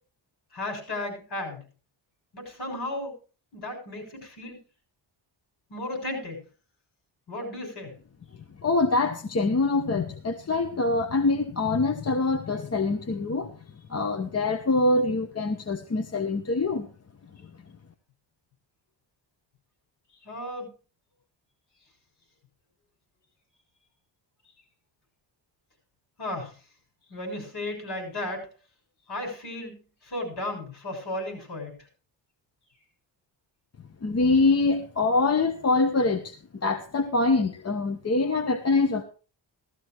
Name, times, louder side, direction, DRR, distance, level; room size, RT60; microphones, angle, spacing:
voice 1, 0.5-1.6 2.3-3.1 3.5-4.6 5.7-6.4 7.3-7.9 20.2-20.7 26.2-26.5 27.1-28.5 29.1-29.8 30.0-31.8, left 1 dB, 60° left, 3 dB, 6.6 m, -34 dB
voice 2, 8.6-13.5 13.9-16.9 34.0-36.3 36.6-39.0, left 3 dB, 35° left, 6 dB, 1.0 m, -24 dB
16.0 x 14.0 x 3.0 m, 0.35 s
wide cardioid pair, 160°, 45 cm